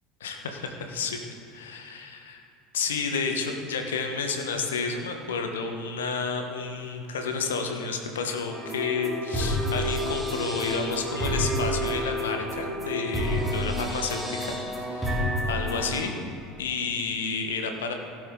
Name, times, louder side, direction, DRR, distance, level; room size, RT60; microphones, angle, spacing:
voice 1, 0.2-1.2 1.5-2.4 2.7-16.2 16.6-17.9, left 5 dB, 75° left, 4 dB, 1.2 m, -31 dB
sound 1, 8.5-16.0, equal, 15° right, 2.3 m, -29 dB
16.5 x 7.6 x 3.8 m, 2.6 s
figure-of-eight pair, 70°, 0 cm